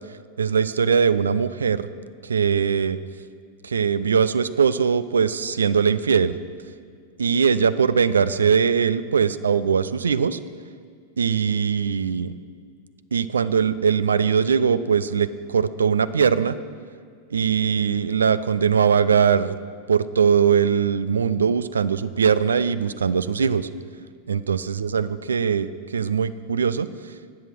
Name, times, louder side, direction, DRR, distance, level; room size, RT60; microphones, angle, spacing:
voice 1, 0.4-1.9 2.2-3.0 3.6-6.3 7.2-10.4 11.2-12.3 13.1-16.6 17.3-19.6 19.9-23.7 24.3-27.1, right 6 dB, 70° right, 16 dB, 0.4 m, -21 dB
12.5 x 8.4 x 6.1 m, 2.1 s
figure-of-eight pair, 90°, 0 cm